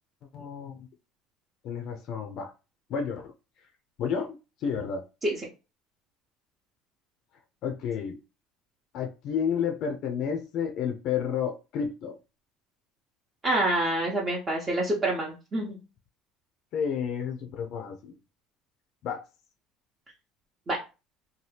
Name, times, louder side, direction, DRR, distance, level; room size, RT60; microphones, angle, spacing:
voice 1, 0.3-0.9 1.6-2.5 2.9-3.3 4.0-5.0 7.6-8.2 8.9-12.2 16.7-18.1 19.0-19.2, left 7 dB, 55° left, 0.4 m, -31 dB
voice 2, 13.4-15.8 20.7-20.8, right 1 dB, 25° right, 0.7 m, -27 dB
2.8 x 2.2 x 3.2 m
cardioid pair, 140°, 0 cm